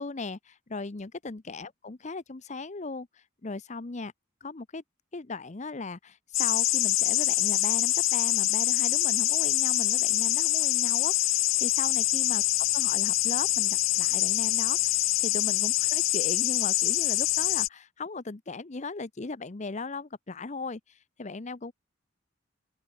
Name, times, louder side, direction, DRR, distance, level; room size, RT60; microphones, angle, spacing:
voice 1, 0.0-4.1 4.4-4.8 5.1-12.4 12.7-21.7, left 3 dB, 35° left, 0.7 m, -38 dB
sound 1, 6.3-17.7, left 17 dB, 85° left, 0.5 m, -25 dB
open air
head